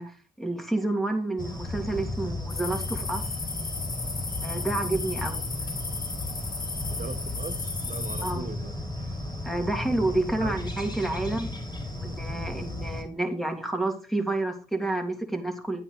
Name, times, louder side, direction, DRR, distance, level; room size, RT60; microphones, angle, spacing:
voice 1, 0.0-3.3 4.4-5.4 8.2-8.5 9.4-11.5 12.0-15.8, right 2 dB, ahead, 3.0 m, -29 dB
sound 1, 1.4-13.0, left 1 dB, 25° left, 5.3 m, -34 dB
sound 2, 2.5-8.3, left 4 dB, 60° left, 2.2 m, -35 dB
voice 2, 6.9-8.7 10.4-10.5, right 5 dB, 50° right, 1.2 m, -39 dB
11.0 x 8.8 x 4.0 m
cardioid pair, 60°, 17 cm